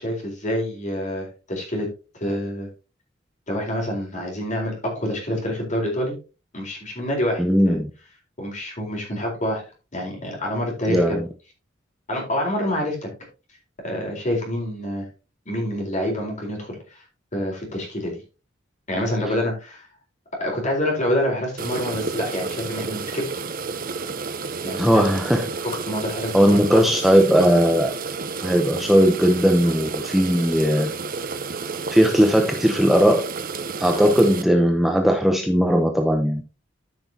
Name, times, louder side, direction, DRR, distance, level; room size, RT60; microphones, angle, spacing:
voice 1, 0.0-1.9 2.1-2.7 3.5-6.1 6.5-7.8 8.4-9.6 9.9-11.2 12.1-13.1 13.8-15.1 15.5-17.0 17.3-18.2 18.9-19.9 20.4-23.3 24.6-25.0 25.9-26.6, left 1 dB, 40° left, 0 dB, 4.2 m, -27 dB
voice 2, 7.4-7.9 10.9-11.3 24.8-25.5 26.3-27.9 28.4-30.9 31.9-33.2 33.8-36.4, equal, ahead, 3 dB, 0.8 m, -18 dB
sound 1, 21.6-34.4, right 4 dB, 45° right, 0.8 m, -31 dB
13.0 x 6.0 x 2.8 m, 0.32 s
head